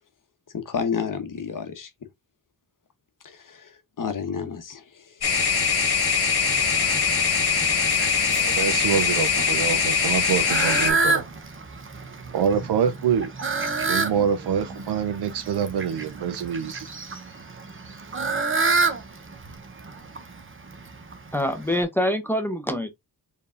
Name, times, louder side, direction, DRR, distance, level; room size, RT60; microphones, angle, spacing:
voice 1, 0.5-1.9 3.2-5.2, left 6 dB, 55° left, 0.9 m, -31 dB
sound 1, 5.2-10.9, left 6 dB, 70° left, 1.2 m, -22 dB
Fowl, 6.4-21.8, right 3 dB, 30° right, 0.8 m, -30 dB
voice 2, 8.4-11.2 12.3-13.3 13.9-16.9, right 7 dB, 90° right, 0.5 m, -25 dB
voice 3, 21.3-22.9, left 1 dB, 5° left, 0.6 m, -25 dB
4.5 x 3.5 x 2.4 m
wide cardioid pair, 175°, 39 cm